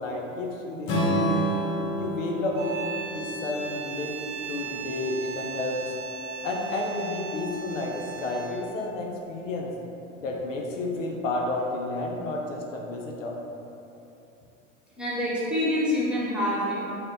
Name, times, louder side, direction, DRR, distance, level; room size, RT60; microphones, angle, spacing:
voice 1, 0.0-1.5 1.9-2.8 3.1-5.9 6.4-9.7 10.2-13.3, left 2 dB, 75° left, -1 dB, 0.6 m, -31 dB
Strum, 0.9-5.1, right 1 dB, 35° left, 0.8 m, -30 dB
sound 1, 2.5-8.7, right 5 dB, 35° right, 0.5 m, -37 dB
voice 2, 15.0-16.9, left 1 dB, 5° right, -9 dB, 1.0 m, -26 dB
4.0 x 2.2 x 3.8 m, 2.9 s
hypercardioid pair, 95°, 38 cm